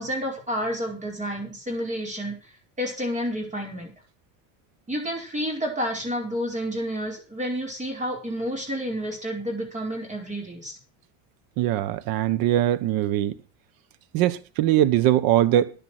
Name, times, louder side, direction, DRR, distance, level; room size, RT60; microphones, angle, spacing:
voice 1, 0.0-3.9 4.9-10.8, equal, 20° right, 5.1 m, -30 dB
voice 2, 11.6-13.3 14.1-15.7, right 12 dB, 65° right, 1.3 m, -21 dB
10.5 x 10.5 x 6.1 m
supercardioid pair, 120°, 38 cm